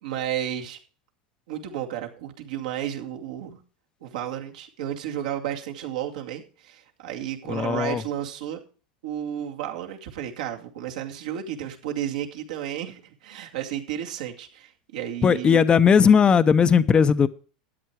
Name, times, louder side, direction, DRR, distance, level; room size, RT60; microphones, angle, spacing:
voice 1, 0.0-0.8 1.5-3.6 4.0-8.6 9.0-15.6, right 10 dB, 75° right, 2.4 m, -32 dB
voice 2, 7.5-8.0 15.2-17.3, left 6 dB, 25° left, 0.7 m, -18 dB
13.0 x 9.1 x 4.8 m
hypercardioid pair, 105°, 4 cm